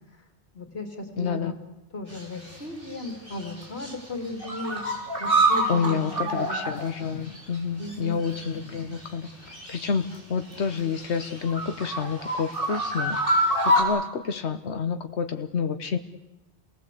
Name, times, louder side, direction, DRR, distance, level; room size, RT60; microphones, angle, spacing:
voice 1, 0.5-1.5 1.9-4.9 5.2-6.6 7.8-8.2, left 2 dB, 70° left, 6 dB, 2.9 m, -36 dB
voice 2, 1.2-1.5 5.7-13.2 13.6-16.0, left 6 dB, 85° left, 8 dB, 1.4 m, -29 dB
sound 1, 2.1-2.6 2.9-3.9 4.2-7.6 7.8-7.9 8.2-10.2 10.5-13.8, right 1 dB, 55° right, 5.2 m, -27 dB
28.0 x 19.0 x 8.3 m, 0.99 s
omnidirectional pair, 1.1 m